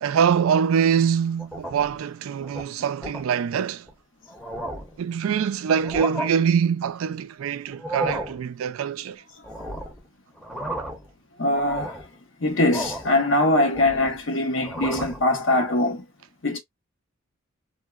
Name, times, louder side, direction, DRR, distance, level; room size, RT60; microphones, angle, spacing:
voice 1, 0.0-3.9 5.0-9.2, right 7 dB, 75° right, 0.3 m, -24 dB
sound 1, 1.4-2.0 2.4-2.6 3.0-3.2 3.9-4.0 4.3-5.0 5.7-6.3 7.7-8.4 9.4-10.0 10.4-11.1 11.5-12.1 12.7-13.2 13.5-14.2 14.6-15.2, right 1 dB, ahead, 0.7 m, -33 dB
voice 2, 11.4-12.0 12.4-16.0 16.4-16.6, left 1 dB, 65° left, 0.8 m, -22 dB
3.5 x 2.0 x 2.3 m
head